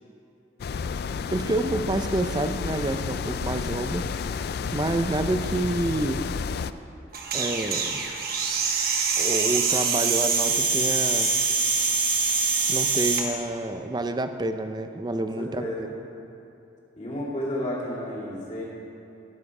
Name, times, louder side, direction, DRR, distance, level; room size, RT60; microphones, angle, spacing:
sound 1, 0.6-6.7, left 5 dB, 55° left, 0.3 m, -31 dB
voice 1, 1.3-4.1 4.7-6.2 7.3-8.1 9.2-11.3 12.7-15.9, right 2 dB, 20° right, 8 dB, 0.5 m, -28 dB
sound 2, 7.1-13.3, right 5 dB, 50° right, 1.2 m, -24 dB
voice 2, 15.2-15.9 17.0-18.6, equal, 40° left, -6 dB, 2.6 m, -32 dB
16.5 x 7.5 x 4.8 m, 2.8 s
head